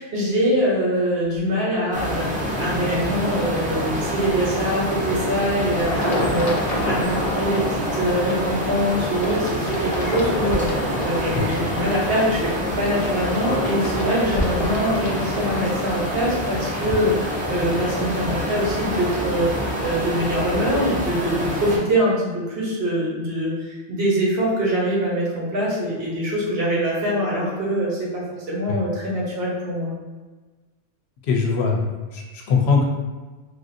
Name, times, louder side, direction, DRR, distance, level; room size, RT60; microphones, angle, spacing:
voice 1, 0.0-7.6 7.9-29.9, equal, 65° right, -5 dB, 1.1 m, -24 dB
sound 1, 1.9-21.8, equal, 10° right, 0.4 m, -27 dB
sound 2, 5.9-15.7, left 1 dB, 55° left, 0.4 m, -29 dB
voice 2, 31.2-32.8, left 4 dB, 70° left, 0 dB, 0.8 m, -21 dB
3.3 x 2.5 x 2.5 m, 1.3 s
omnidirectional pair, 1.2 m